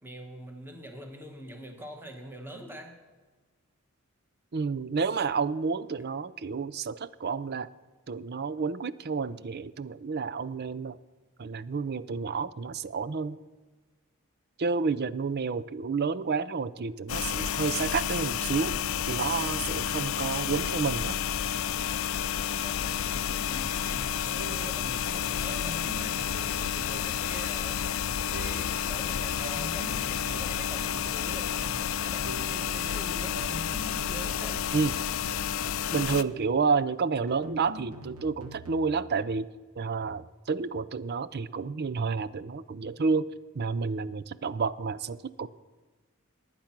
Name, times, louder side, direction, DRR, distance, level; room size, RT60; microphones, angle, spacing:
voice 1, 0.0-3.0 22.6-27.8 28.3-33.4 34.1-34.7 35.8-36.1, right 1 dB, 10° right, 3 dB, 1.7 m, -44 dB
voice 2, 4.5-7.7 8.1-11.0 11.4-13.4 14.6-18.7 19.1-21.2 34.7-35.0 35.9-39.5 39.8-43.3 43.5-45.5, right 5 dB, 50° right, 16 dB, 0.5 m, -30 dB
sound 1, 17.1-36.2, left 9 dB, 65° left, 0.5 m, -30 dB
sound 2, 24.4-24.8 25.5-27.4 28.3-28.7 29.4-31.2 32.3-32.7 33.3-35.3 36.2-36.6 37.3-39.1, right 2 dB, 80° right, 1.5 m, -44 dB
20.0 x 8.9 x 6.0 m, 1.3 s
head